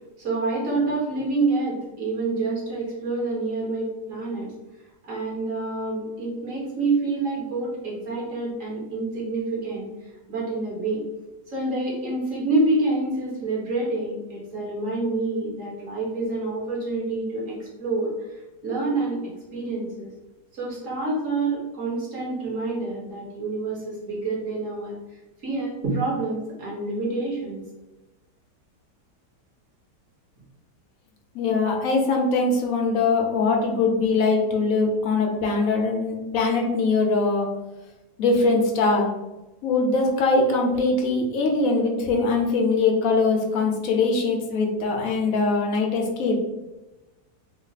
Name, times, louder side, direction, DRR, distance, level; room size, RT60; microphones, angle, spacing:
voice 1, 0.2-4.5 5.0-9.9 10.3-11.0 11.5-19.2 19.5-20.1 20.5-25.0 25.4-27.6, right 2 dB, 50° right, -4 dB, 1.5 m, -27 dB
voice 2, 31.3-37.5 38.2-39.1 39.6-46.4, left 3 dB, 60° left, 1 dB, 1.0 m, -22 dB
3.8 x 2.1 x 4.0 m, 1.1 s
omnidirectional pair, 1.8 m